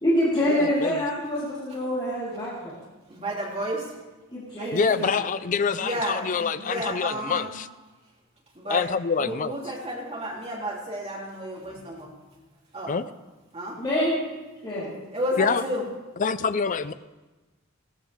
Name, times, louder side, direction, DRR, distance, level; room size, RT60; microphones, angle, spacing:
voice 1, 0.0-2.7 4.3-5.2 13.8-14.2 14.6-14.9, left 1 dB, 25° left, -9 dB, 4.0 m, -26 dB
voice 2, 0.6-1.0 4.7-7.7 8.7-9.5 12.9-13.0 15.4-15.6 16.2-16.9, left 5 dB, 40° left, 14 dB, 0.4 m, -26 dB
voice 3, 3.1-4.0 4.6-5.2 5.8-7.5 8.5-8.9 9.2-12.1 12.7-13.0 13.5-13.8 15.1-15.9, right 1 dB, 30° right, -3 dB, 3.2 m, -32 dB
16.5 x 14.0 x 3.6 m, 1.2 s
head